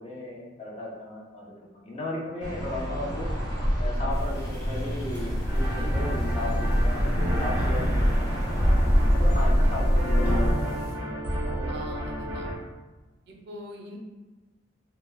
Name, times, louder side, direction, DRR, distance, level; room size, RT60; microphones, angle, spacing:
voice 1, 0.0-1.5 1.7-3.3 3.8-8.6 9.1-12.2, left 1 dB, 35° left, -4 dB, 0.6 m, -36 dB
sound 1, 2.4-10.6, equal, 75° left, 0.9 m, -25 dB
sound 2, 4.1-10.9, left 1 dB, 20° left, 0.9 m, -36 dB
sound 3, 5.5-12.5, equal, 10° right, 0.5 m, -30 dB
voice 2, 11.7-12.4 13.3-14.0, right 1 dB, 60° right, 0 dB, 0.4 m, -42 dB
2.1 x 2.1 x 3.2 m, 1.2 s
head